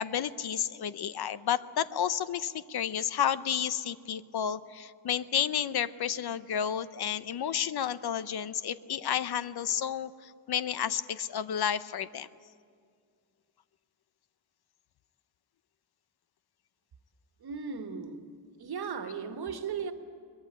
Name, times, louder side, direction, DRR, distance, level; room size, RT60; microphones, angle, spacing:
voice 1, 0.0-12.3, left 9 dB, 60° left, 14 dB, 0.8 m, -31 dB
voice 2, 17.4-18.3 18.6-19.9, right 6 dB, 60° right, 7 dB, 1.6 m, -36 dB
23.0 x 21.5 x 8.8 m, 2.1 s
wide cardioid pair, 155°, 43 cm